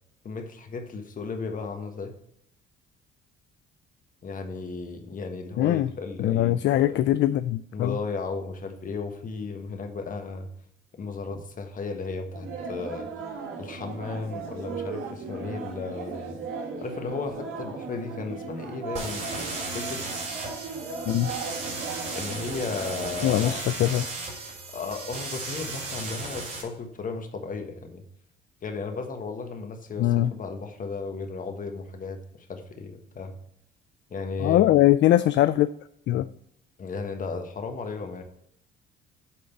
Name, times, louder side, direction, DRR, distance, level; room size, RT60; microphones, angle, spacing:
voice 1, 0.2-2.1 4.2-7.0 7.7-10.5 11.0-13.1 13.6-16.4 16.8-19.5 19.7-20.1 22.1-23.6 24.7-28.0 28.6-32.2 32.5-33.3 34.1-34.7 36.8-38.2, left 4 dB, 40° left, 5 dB, 1.4 m, -35 dB
voice 2, 5.6-5.9 6.2-8.0 21.1-21.3 23.2-24.1 30.0-30.3 34.4-35.7 36.1-36.2, left 13 dB, 60° left, 13 dB, 0.4 m, -21 dB
sound 1, 12.3-23.6, right 4 dB, 80° right, 1.8 m, -37 dB
sound 2, 18.9-26.6, right 3 dB, 35° right, 3.8 m, -35 dB
8.6 x 3.8 x 6.9 m, 0.72 s
cardioid pair, 105°, 21 cm